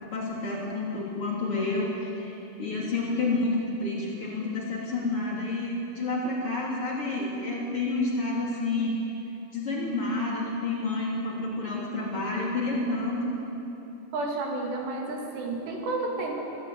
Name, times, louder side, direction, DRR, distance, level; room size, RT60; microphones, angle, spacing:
voice 1, 0.0-9.0 9.5-13.3, left 2 dB, 35° left, -4 dB, 3.7 m, -29 dB
voice 2, 14.1-16.4, right 2 dB, 75° right, 0 dB, 4.7 m, -31 dB
22.5 x 15.5 x 9.3 m, 2.9 s
omnidirectional pair, 5.0 m